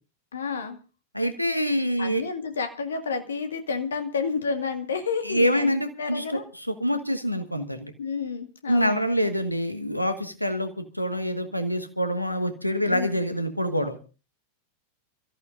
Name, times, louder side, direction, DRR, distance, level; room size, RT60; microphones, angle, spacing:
voice 1, 0.3-0.8 2.0-6.4 8.0-9.0 12.8-13.1, left 5 dB, 70° left, 7 dB, 1.9 m, -30 dB
voice 2, 1.1-2.2 5.2-7.9 8.7-14.0, equal, 90° left, 8 dB, 1.5 m, -26 dB
28.5 x 14.0 x 2.6 m, 0.33 s
figure-of-eight pair, 90°, 0 cm